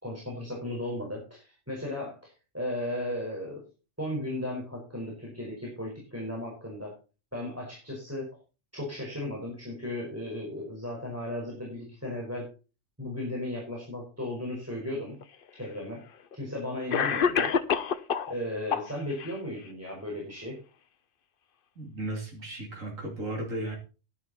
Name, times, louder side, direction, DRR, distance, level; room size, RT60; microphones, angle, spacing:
voice 1, 0.0-3.6 4.0-6.9 7.3-8.3 8.7-12.5 13.0-15.2 15.6-16.0 16.3-17.5 18.3-20.6, left 1 dB, 10° right, -2 dB, 4.9 m, -35 dB
Cough, 15.2-15.3 16.3-16.4 16.9-18.3 18.7-19.3, left 6 dB, 50° left, 0.8 m, -27 dB
voice 2, 21.7-23.8, right 1 dB, 85° right, 0 dB, 3.3 m, -35 dB
11.5 x 11.0 x 4.2 m, 0.33 s
omnidirectional pair, 1.3 m